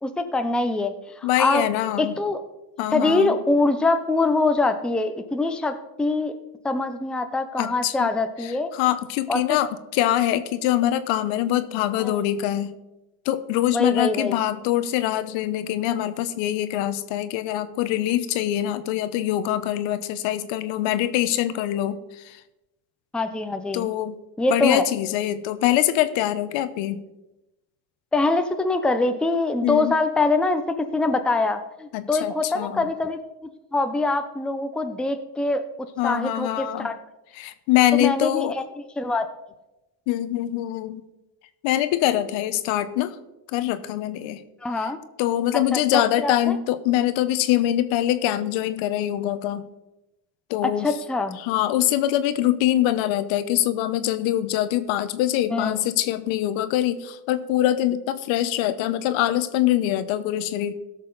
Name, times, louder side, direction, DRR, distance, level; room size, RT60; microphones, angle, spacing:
voice 1, 0.0-1.6 2.0-2.4 2.9-6.3 6.6-8.7 9.3-9.6 12.0-12.1 13.7-14.4 23.1-23.9 24.4-24.8 28.1-33.2 33.7-35.6 36.0-36.9 37.9-38.6 39.0-39.3 44.6-45.0 45.7-45.8 46.2-46.5 50.6-51.4 55.5-55.8, left 2 dB, ahead, 7 dB, 0.6 m, -24 dB
voice 2, 1.2-2.2 2.8-3.4 7.6-8.1 8.4-12.7 13.2-22.0 22.2-22.4 23.7-24.2 24.5-27.0 29.6-29.9 31.9-32.9 36.0-36.9 37.4-38.5 40.1-41.0 41.6-43.2 43.5-44.4 44.8-44.9 45.2-49.7 50.5-50.9 51.4-60.7, left 13 dB, 65° left, 12 dB, 0.9 m, -24 dB
16.0 x 6.5 x 3.9 m, 0.98 s
supercardioid pair, 100°, 49 cm